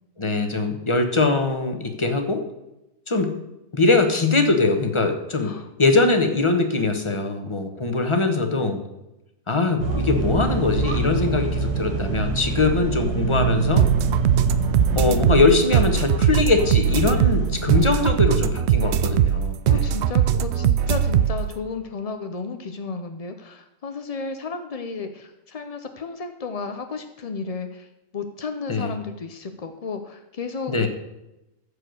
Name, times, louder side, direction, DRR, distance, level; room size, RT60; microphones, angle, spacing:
voice 1, 0.2-2.4 3.1-3.4 3.7-5.5 5.8-8.8 9.5-13.9 15.0-19.8 28.7-28.9 30.7-30.9, left 3 dB, 20° left, 6 dB, 1.0 m, -22 dB
sound 1, 9.8-18.1, right 3 dB, 90° right, 1.9 m, -25 dB
sound 2, 13.8-21.5, right 9 dB, 70° right, 0.6 m, -20 dB
voice 2, 19.7-30.9, left 4 dB, 65° left, 7 dB, 0.3 m, -33 dB
14.5 x 4.9 x 6.4 m, 0.93 s
omnidirectional pair, 1.6 m